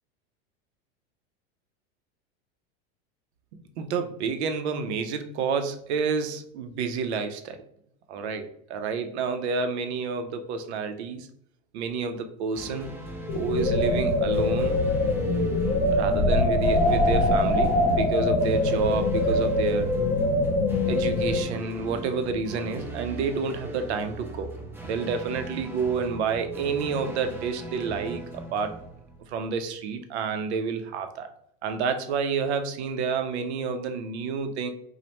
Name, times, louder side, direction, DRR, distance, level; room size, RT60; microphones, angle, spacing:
voice 1, 3.8-7.6 8.1-11.3 11.7-12.9 13.2-14.8 15.9-19.9 20.9-24.5 24.8-28.2 28.5-28.7 29.3-31.3 31.6-34.7, right 5 dB, 90° right, 8 dB, 0.5 m, -29 dB
sound 1, 12.5-29.6, right 2 dB, 5° right, 0.6 m, -39 dB
sound 2, 13.3-21.4, left 2 dB, 60° left, 0.7 m, -23 dB
2.8 x 2.1 x 3.0 m, 0.70 s
supercardioid pair, 125°, 32 cm